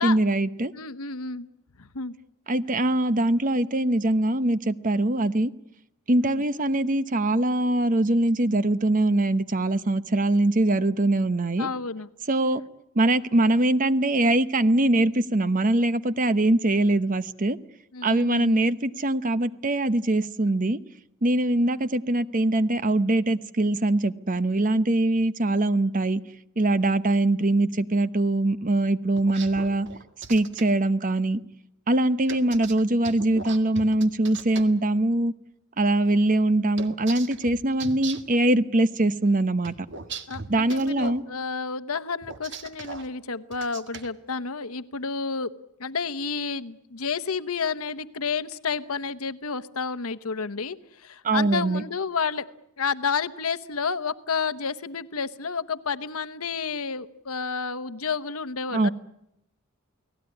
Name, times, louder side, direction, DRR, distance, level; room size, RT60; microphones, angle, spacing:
voice 1, 0.0-0.7 2.5-5.5 6.1-11.7 12.3-12.6 12.9-17.6 18.0-20.8 21.2-26.2 26.6-29.9 30.3-31.4 31.9-35.3 35.8-39.7 40.5-41.2 51.2-51.8 58.7-58.9, right 1 dB, 40° right, 0.9 m, -22 dB
voice 2, 0.7-1.5 1.8-2.1 6.2-6.4 11.6-12.1 17.9-18.7 40.3-45.5 45.8-52.5 52.8-58.9, left 5 dB, 80° left, 1.1 m, -30 dB
sound 1, 29.1-30.6 32.3-34.6 36.8-38.4 39.6-41.2 42.2-43.1 43.5-44.1, right 4 dB, 55° right, 1.8 m, -38 dB
29.5 x 18.5 x 9.8 m
head